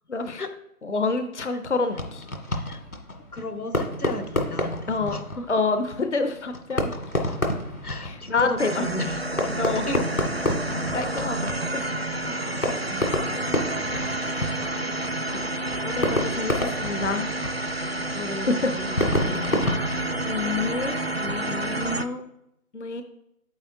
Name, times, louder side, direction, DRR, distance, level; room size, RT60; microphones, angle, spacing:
voice 1, 0.1-0.4 0.8-2.2 4.9-5.2 5.5-6.9 8.0-8.9 9.6-9.9 10.9-12.0 13.3-13.6 15.8-17.3 18.5-18.6 20.2-21.0 22.7-23.0, left 3 dB, 55° left, 8 dB, 0.7 m, -27 dB
Fireworks, 1.9-20.7, left 1 dB, 75° left, 1.9 m, -30 dB
voice 2, 2.5-2.8 3.3-5.5 7.8-9.2 9.7-10.0 11.8-11.9 12.2-13.0 17.8-19.6 21.2-22.3, left 2 dB, 90° left, 6 dB, 1.2 m, -35 dB
sound 1, 8.6-22.1, right 1 dB, 45° right, 0.4 m, -29 dB
8.8 x 8.3 x 2.6 m, 0.81 s
figure-of-eight pair, 160°, 43 cm